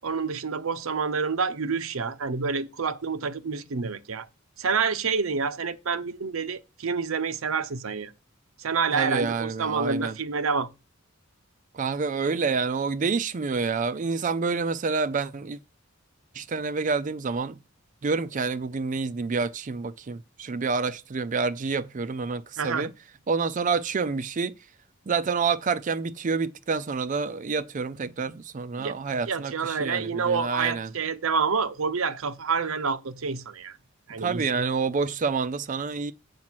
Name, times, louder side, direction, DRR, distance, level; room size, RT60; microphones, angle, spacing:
voice 1, 0.0-4.3 4.6-8.1 8.6-10.7 22.6-22.9 28.8-29.0 29.3-33.8 34.1-34.7, right 5 dB, 75° right, 0.7 m, -28 dB
voice 2, 8.9-10.1 11.7-15.6 16.3-17.6 18.0-22.9 23.3-24.6 25.1-30.9 34.2-36.1, right 4 dB, 40° right, 0.4 m, -28 dB
7.3 x 5.2 x 6.1 m
head